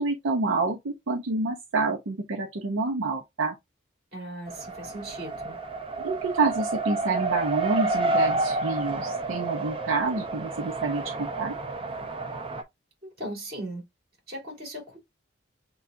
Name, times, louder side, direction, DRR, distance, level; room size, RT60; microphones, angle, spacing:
voice 1, 0.0-3.5 6.0-11.6, right 3 dB, 90° right, 0.7 m, -28 dB
voice 2, 4.1-5.6 13.0-13.8 14.3-15.0, right 1 dB, 50° right, 3.0 m, -38 dB
Race car auto racing, 4.5-12.6, right 3 dB, 25° right, 0.5 m, -30 dB
6.8 x 2.3 x 2.5 m
head